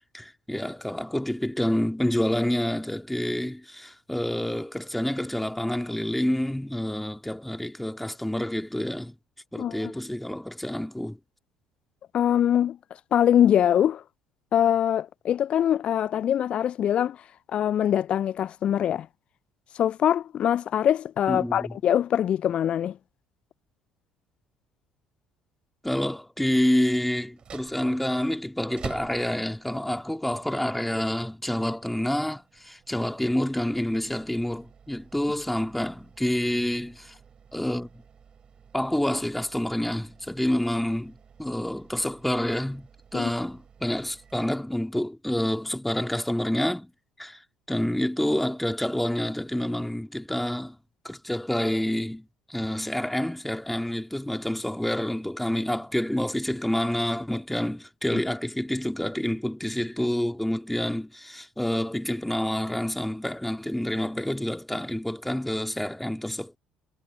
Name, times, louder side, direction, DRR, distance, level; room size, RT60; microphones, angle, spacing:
voice 1, 0.1-9.1 9.5-11.2 21.3-21.8 25.8-37.1 37.5-37.9 38.7-41.1 41.4-46.9 47.2-47.4 47.7-50.8 51.0-66.6, left 1 dB, 5° left, 2.6 m, -28 dB
voice 2, 9.5-9.9 12.1-12.8 13.1-14.0 14.5-17.2 17.5-19.1 19.7-23.0 43.1-43.3 58.1-58.2, left 10 dB, 45° left, 0.4 m, -23 dB
sound 1, 27.3-45.1, right 7 dB, 40° right, 4.1 m, -50 dB
figure-of-eight pair, 55°, 3 cm